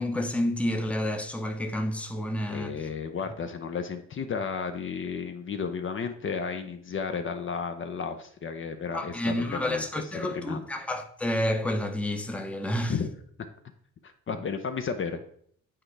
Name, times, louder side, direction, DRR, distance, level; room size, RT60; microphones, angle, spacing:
voice 1, 0.0-2.7 8.9-12.9, left 1 dB, 5° left, 0.7 m, -29 dB
voice 2, 2.4-10.6 12.8-13.1 14.0-15.2, left 6 dB, 40° left, 0.6 m, -33 dB
8.7 x 4.4 x 3.3 m
cardioid pair, 90°, 30 cm